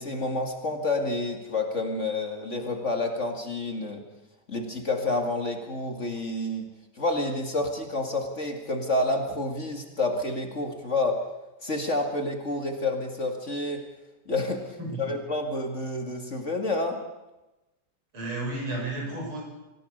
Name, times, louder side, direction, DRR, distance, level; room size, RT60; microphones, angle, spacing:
voice 1, 0.0-4.0 4.5-6.7 7.0-11.2 11.6-13.9 14.3-17.0, left 2 dB, 35° left, 4 dB, 2.4 m, -29 dB
voice 2, 18.1-19.4, right 2 dB, 80° right, -1 dB, 7.9 m, -32 dB
26.0 x 16.0 x 6.7 m, 1.0 s
omnidirectional pair, 2.3 m